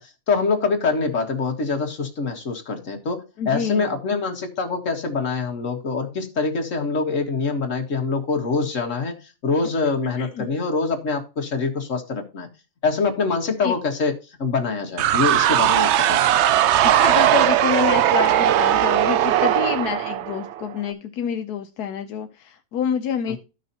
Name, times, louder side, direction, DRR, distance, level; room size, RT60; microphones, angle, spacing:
voice 1, 0.0-12.5 12.8-16.2 23.3-23.4, left 4 dB, 55° left, 3 dB, 2.0 m, -25 dB
voice 2, 3.4-4.0 10.2-10.5 13.6-13.7 16.8-23.4, left 8 dB, 80° left, 7 dB, 1.3 m, -27 dB
sound 1, 15.0-20.7, right 11 dB, 70° right, 0.6 m, -18 dB
13.5 x 6.1 x 2.8 m, 0.30 s
omnidirectional pair, 1.7 m